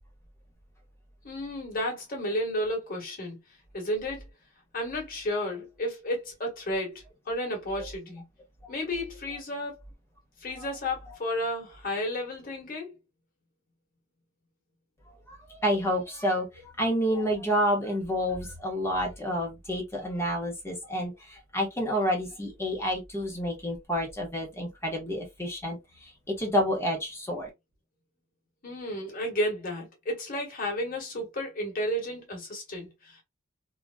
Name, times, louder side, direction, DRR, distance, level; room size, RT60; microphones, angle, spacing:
voice 1, 1.2-3.4 3.7-4.2 4.7-8.2 8.7-9.8 10.4-12.9 28.6-33.2, left 1 dB, 45° left, 1.3 m, -32 dB
voice 2, 15.1-27.5, equal, 15° left, 1.1 m, -29 dB
3.0 x 2.5 x 2.2 m
head